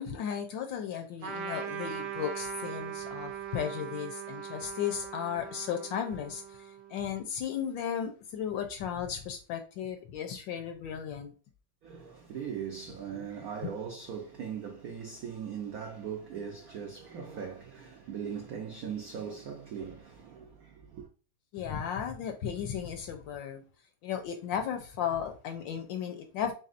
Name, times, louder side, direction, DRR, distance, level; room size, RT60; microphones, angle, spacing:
voice 1, 0.0-11.3 21.5-23.6 24.0-26.5, left 8 dB, 75° left, 1.1 m, -35 dB
Trumpet, 1.2-7.1, right 7 dB, 65° right, 1.1 m, -40 dB
voice 2, 11.8-21.1, right 7 dB, 85° right, 0.8 m, -40 dB
4.1 x 3.6 x 2.5 m
omnidirectional pair, 2.4 m